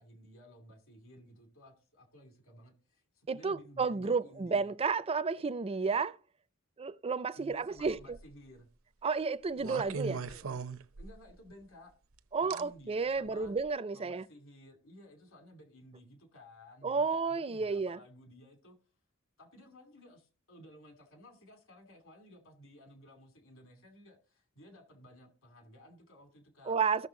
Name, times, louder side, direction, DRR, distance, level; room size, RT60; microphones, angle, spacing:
voice 1, 0.0-4.7 7.4-8.7 9.5-10.6 11.0-11.9 12.4-13.5 13.9-18.8 19.4-26.8, equal, 70° left, 2.6 m, -56 dB
voice 2, 3.3-6.2 6.8-8.0 9.0-10.2 12.3-14.2 16.8-18.0 26.7-27.1, right 5 dB, 30° right, 0.4 m, -31 dB
sound 1, 7.8-8.3 9.6-11.4 12.5-12.6 13.4-13.6, right 5 dB, 70° right, 0.7 m, -39 dB
14.5 x 6.6 x 3.7 m
head